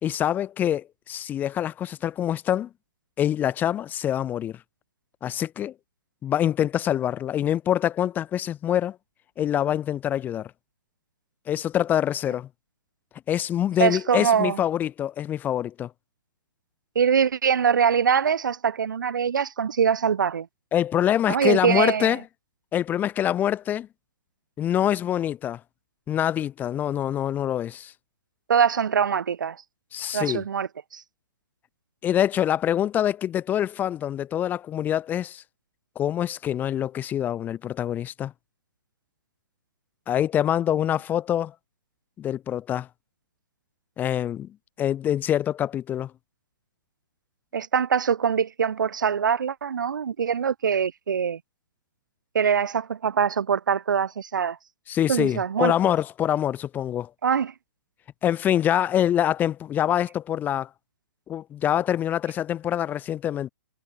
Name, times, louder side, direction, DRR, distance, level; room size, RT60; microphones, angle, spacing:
voice 1, 0.0-2.7 3.2-4.6 5.2-5.7 6.2-9.0 9.4-10.5 11.5-12.5 13.3-15.9 20.7-22.2 22.7-23.9 24.6-25.6 26.1-27.9 29.9-30.4 32.0-35.4 35.9-38.3 40.1-41.5 42.2-42.9 44.0-44.5 44.8-46.1 54.9-57.1 58.2-60.7 61.3-63.5, left 10 dB, 15° left, 1.4 m, -25 dB
voice 2, 13.8-14.6 16.9-20.5 21.3-22.2 28.5-29.6 30.1-31.0 47.5-51.4 52.3-54.6 55.1-55.7 57.2-57.5, right 7 dB, 65° right, 2.7 m, -23 dB
hypercardioid pair, 140°, 11 cm